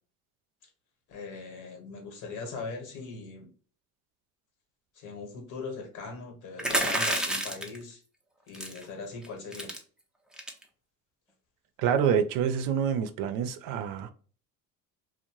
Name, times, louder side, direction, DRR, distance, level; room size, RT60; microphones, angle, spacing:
voice 1, 1.1-3.5 4.9-8.0 8.5-9.7, left 4 dB, 65° left, 1.1 m, -40 dB
sound 1, 6.6-7.8 8.5-8.8 9.2-9.3 9.5-9.8 10.3-10.6, right 1 dB, ahead, 0.4 m, -29 dB
voice 2, 11.8-14.1, right 8 dB, 80° right, 0.5 m, -27 dB
2.6 x 2.1 x 2.9 m
cardioid pair, 115°, 33 cm